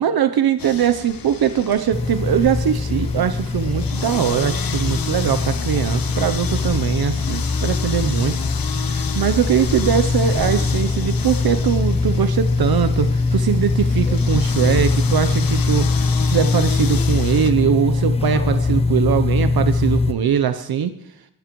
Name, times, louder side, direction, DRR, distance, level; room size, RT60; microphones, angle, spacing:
voice 1, 0.0-8.4 8.7-20.9, right 9 dB, 65° right, 10 dB, 0.7 m, -21 dB
Tree Chainsawed Drops, 0.6-17.5, left 7 dB, 60° left, 1.0 m, -32 dB
sound 1, 1.9-20.1, left 3 dB, 15° left, 0.6 m, -21 dB
20.0 x 12.0 x 3.0 m, 0.77 s
wide cardioid pair, 125°, 40 cm